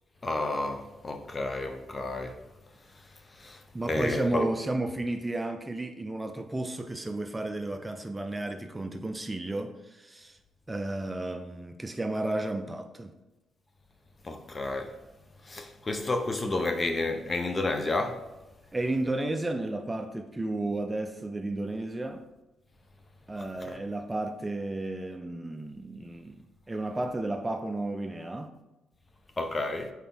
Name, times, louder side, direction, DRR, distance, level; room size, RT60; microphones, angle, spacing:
voice 1, 0.2-2.4 3.4-3.6 3.9-4.4 14.2-14.9 15.5-18.2 23.7-23.8 29.4-29.9, left 2 dB, 25° left, 0.6 m, -31 dB
voice 2, 3.7-10.4 10.7-13.1 18.7-22.2 23.3-28.5, right 2 dB, 15° right, 0.4 m, -33 dB
4.3 x 4.1 x 5.4 m
cardioid pair, 90°, 0 cm